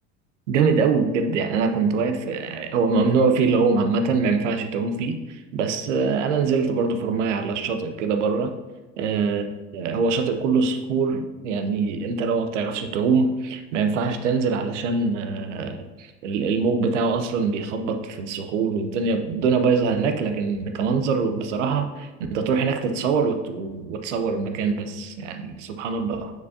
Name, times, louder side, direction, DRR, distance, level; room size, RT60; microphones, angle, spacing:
voice 1, 0.5-8.5 9.0-9.4 9.7-26.3, right 4 dB, 80° right, 6 dB, 0.8 m, -23 dB
7.1 x 6.2 x 2.7 m, 1.2 s
hypercardioid pair, 70°, 36 cm